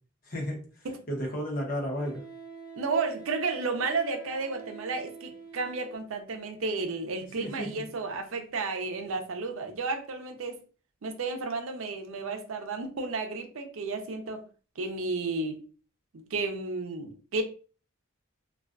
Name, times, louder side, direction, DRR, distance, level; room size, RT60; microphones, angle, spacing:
voice 1, 0.2-0.6 1.1-2.2 7.4-7.9, equal, 45° left, 0 dB, 0.7 m, -33 dB
Wind instrument woodwind instrument, 0.7-0.8 2.0-6.0, right 3 dB, 10° right, 0.6 m, -46 dB
voice 2, 2.8-10.6 11.0-14.4 14.8-15.6 16.1-17.4, right 3 dB, 70° right, 5 dB, 0.5 m, -32 dB
2.3 x 2.2 x 2.4 m, 0.37 s
head